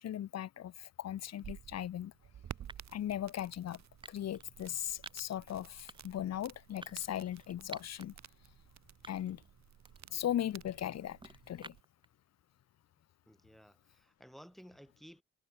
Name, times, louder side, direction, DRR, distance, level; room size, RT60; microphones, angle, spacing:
voice 1, 0.0-2.1 2.9-3.8 4.1-8.1 9.1-9.4 10.1-11.8, left 11 dB, 60° left, 1.1 m, -38 dB
sound 1, 1.2-11.8, right 10 dB, 65° right, 4.5 m, -53 dB
sound 2, 1.4-1.6 2.7-3.0 4.0-4.5 5.0-5.4 5.9-6.2 6.8-8.1 8.5-8.6 9.0-9.5 9.9-12.1, right 2 dB, 15° right, 3.8 m, -53 dB
voice 2, 13.3-15.2, equal, ahead, 2.8 m, -56 dB
cardioid pair, 90°, 30 cm